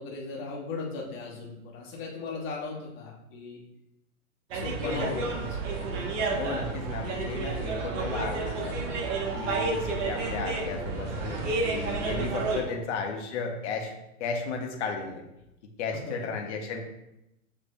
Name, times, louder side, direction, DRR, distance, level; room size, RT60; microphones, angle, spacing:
voice 1, 0.0-3.6 4.5-5.5 6.4-6.6 11.1-11.3 12.7-13.1 15.9-16.1, left 4 dB, 25° left, -2 dB, 1.1 m, -38 dB
sound 1, 4.5-12.6, right 3 dB, 55° right, 1.0 m, -31 dB
voice 2, 4.9-5.3 6.4-9.0 9.3-13.9 14.2-15.2 15.8-16.8, left 4 dB, 50° left, 2 dB, 1.0 m, -34 dB
7.0 x 3.1 x 2.2 m, 0.87 s
hypercardioid pair, 120°, 45 cm